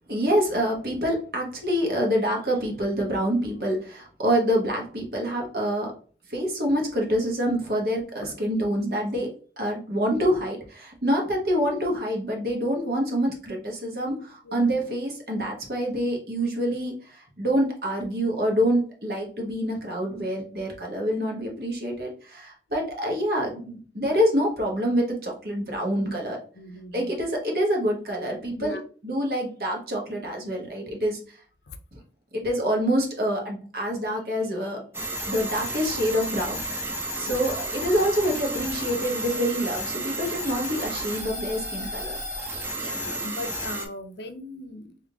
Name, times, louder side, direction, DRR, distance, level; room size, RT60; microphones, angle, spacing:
voice 1, 0.1-5.9 6.3-26.4 26.9-31.4 31.9-32.0 32.3-34.8 35.3-36.6 37.1-42.2, equal, 55° right, 1.2 m, -26 dB
voice 2, 26.6-27.1 28.5-28.8 31.7-31.8 37.2-37.5 42.3-44.9, left 2 dB, 70° left, 0.6 m, -39 dB
sound 1, 34.9-43.9, right 1 dB, 15° right, 0.7 m, -32 dB
3.6 x 2.7 x 3.5 m
head